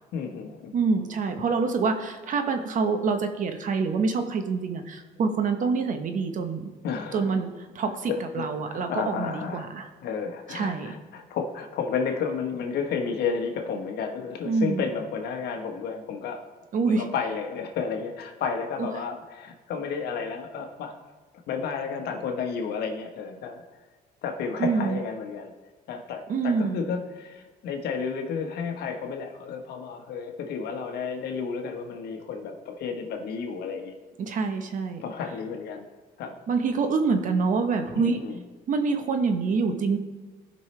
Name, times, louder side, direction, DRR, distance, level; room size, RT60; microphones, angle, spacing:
voice 1, 0.1-0.7 6.8-7.3 8.1-9.7 10.0-16.4 16.9-21.0 21.5-23.6 24.2-25.5 25.9-34.0 35.0-35.8 36.2-36.4 37.9-38.4, left 6 dB, 70° left, 4 dB, 1.2 m, -32 dB
voice 2, 0.7-6.7 7.1-9.9 10.5-10.9 14.4-14.8 16.7-17.0 18.8-18.9 24.6-25.0 26.3-26.8 34.2-35.0 36.5-38.2 38.7-40.0, right 4 dB, 50° right, 6 dB, 1.1 m, -26 dB
15.5 x 5.5 x 3.3 m, 1.3 s
cardioid pair, 110°, 17 cm